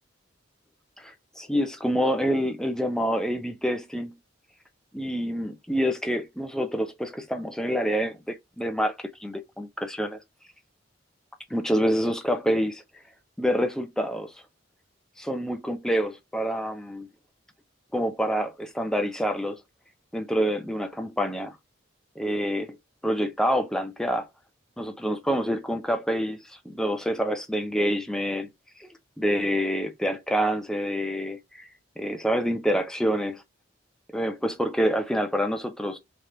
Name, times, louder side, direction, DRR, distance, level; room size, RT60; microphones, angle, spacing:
voice 1, 1.0-4.2 4.9-10.2 11.5-12.8 13.4-14.3 15.2-17.1 17.9-19.6 20.1-21.6 22.2-22.8 23.0-24.3 24.8-28.5 28.8-28.9 29.2-31.7 32.0-33.4 34.1-36.0, equal, 5° left, 0.5 m, -27 dB
3.3 x 2.9 x 3.7 m
head